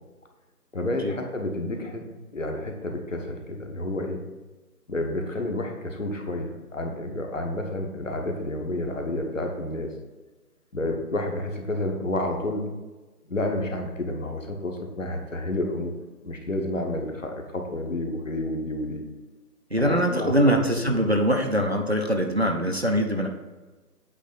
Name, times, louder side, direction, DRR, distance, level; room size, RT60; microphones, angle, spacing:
voice 1, 0.7-2.0 2.3-4.2 4.9-9.9 10.7-12.6 13.3-15.9 16.2-19.0 19.8-20.6 20.8-21.0, left 1 dB, 55° left, 3 dB, 1.3 m, -30 dB
voice 2, 19.7-23.3, equal, 45° right, 3 dB, 0.6 m, -23 dB
8.3 x 3.4 x 5.7 m, 1.2 s
figure-of-eight pair, 180°, 47 cm